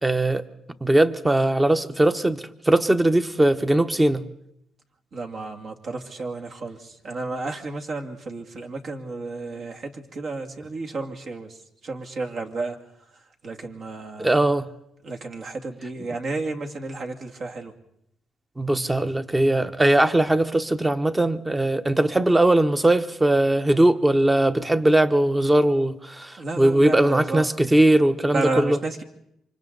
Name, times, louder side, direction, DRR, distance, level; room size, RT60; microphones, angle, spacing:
voice 1, 0.0-0.4 0.8-4.2 14.2-14.7 18.6-28.8, right 1 dB, 15° right, 1.1 m, -20 dB
voice 2, 5.1-11.6 11.8-12.8 13.4-14.4 15.0-17.7 26.4-27.5 28.3-29.0, right 3 dB, 55° right, 2.3 m, -32 dB
28.0 x 25.0 x 4.0 m
cardioid pair, 90°, 0 cm